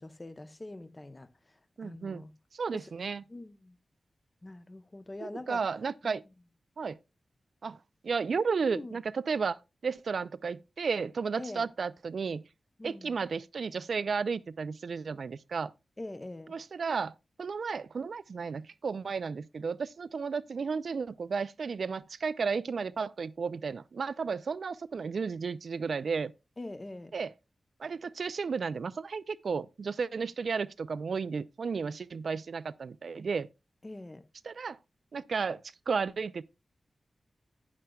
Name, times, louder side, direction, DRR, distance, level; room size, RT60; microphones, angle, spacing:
voice 1, 0.0-2.3 2.7-3.8 4.4-5.7 6.0-6.2 8.6-9.0 11.4-11.7 12.8-13.2 16.0-16.6 26.6-27.1 33.8-34.3, left 2 dB, 30° left, 0.8 m, -44 dB
voice 2, 1.8-2.2 2.5-3.2 5.2-6.2 6.8-7.0 7.6-7.8 8.0-12.4 12.8-15.7 16.5-17.1 17.4-26.3 27.1-27.3 27.8-33.5 34.4-34.8 35.1-35.6 35.9-36.4, right 5 dB, 70° right, 0.4 m, -33 dB
12.5 x 8.8 x 2.3 m
cardioid pair, 40°, 0 cm